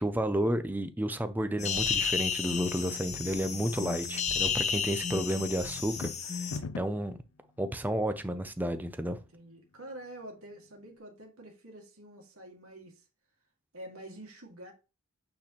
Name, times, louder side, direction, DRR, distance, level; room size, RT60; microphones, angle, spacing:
voice 1, 0.0-6.1 6.8-7.2 7.6-9.2, right 1 dB, 10° right, 0.4 m, -31 dB
sound 1, 1.6-6.6, left 6 dB, 30° left, 0.7 m, -32 dB
sound 2, 5.8-7.1, left 4 dB, 75° left, 0.4 m, -38 dB
voice 2, 9.1-13.0 13.7-14.7, right 1 dB, 85° right, 2.1 m, -47 dB
8.7 x 4.2 x 3.0 m
head